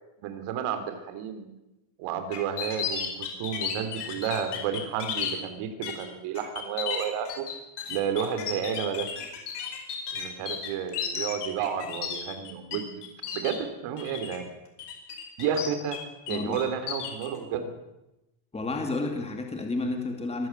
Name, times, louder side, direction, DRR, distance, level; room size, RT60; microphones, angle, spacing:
voice 1, 0.2-1.5 2.0-7.4 7.9-9.1 10.1-12.9 13.3-14.5 15.4-16.0 16.3-17.7, right 8 dB, 80° right, 8 dB, 3.5 m, -31 dB
sound 1, 2.3-5.3 5.8-6.0 6.4-12.8 13.0-13.6 14.0-14.4 14.8-16.0 16.3-17.3, left 8 dB, 55° left, 5.1 m, -33 dB
voice 2, 18.5-20.5, left 2 dB, 10° left, 3 dB, 2.6 m, -31 dB
24.0 x 14.5 x 8.2 m, 0.95 s
cardioid pair, 150°, 49 cm